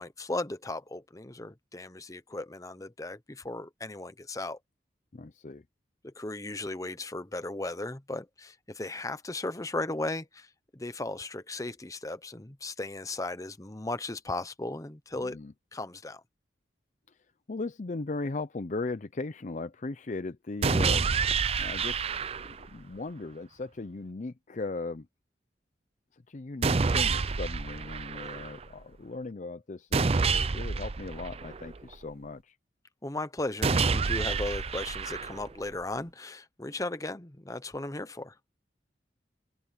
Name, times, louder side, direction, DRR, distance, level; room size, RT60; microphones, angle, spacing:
voice 1, 0.0-4.6 6.0-15.4 15.7-16.2 28.2-28.3 33.0-38.4, left 2 dB, 20° left, 0.9 m, -36 dB
voice 2, 5.1-5.6 15.2-15.5 17.5-21.1 21.6-22.0 22.4-25.1 26.1-32.6, left 3 dB, 45° left, 0.6 m, -38 dB
sound 1, 20.6-22.6 26.6-28.6 29.9-31.9 33.6-35.6, right 4 dB, 35° right, 0.5 m, -28 dB
head